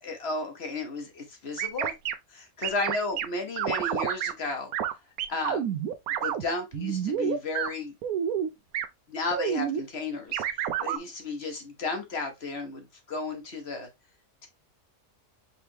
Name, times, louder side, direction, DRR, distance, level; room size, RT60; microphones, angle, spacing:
voice 1, 0.0-1.9 2.3-4.7 5.3-5.7 6.2-7.9 9.1-10.4 10.8-13.9, left 3 dB, 50° left, 1.2 m, -33 dB
sound 1, 1.6-2.1 2.6-3.3 3.6-4.3 4.7-4.9 5.2-6.4 6.7-7.7 8.0-8.5 8.7-8.8 9.3-9.8 10.3-11.0, right 10 dB, 90° right, 1.1 m, -29 dB
5.3 x 3.3 x 2.7 m
omnidirectional pair, 1.5 m